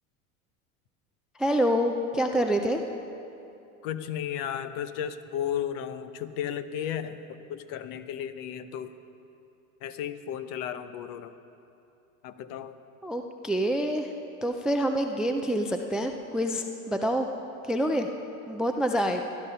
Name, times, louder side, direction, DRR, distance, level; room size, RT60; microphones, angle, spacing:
voice 1, 1.4-2.8 13.0-14.1 14.4-17.3 17.7-18.1 18.5-19.2, equal, ahead, 5 dB, 0.4 m, -27 dB
voice 2, 3.8-9.0 9.8-11.3 12.2-12.7, left 9 dB, 50° left, 11 dB, 0.9 m, -34 dB
16.5 x 11.5 x 5.6 m, 2.8 s
hypercardioid pair, 110°, 43 cm